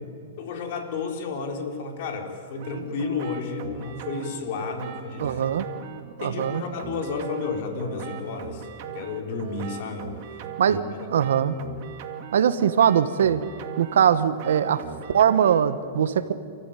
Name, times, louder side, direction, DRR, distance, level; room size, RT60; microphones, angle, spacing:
voice 1, 0.4-5.4 6.2-10.4 10.7-10.8, left 4 dB, 60° left, 3 dB, 4.5 m, -32 dB
sound 1, 2.6-15.8, right 9 dB, 50° right, 2.6 m, -40 dB
voice 2, 5.2-5.7 6.2-6.6 10.6-10.8 11.1-11.5 12.3-13.4 13.8-14.8 15.1-16.3, right 8 dB, 75° right, 12 dB, 1.4 m, -21 dB
28.5 x 15.0 x 9.3 m, 2.4 s
hypercardioid pair, 130°, 0 cm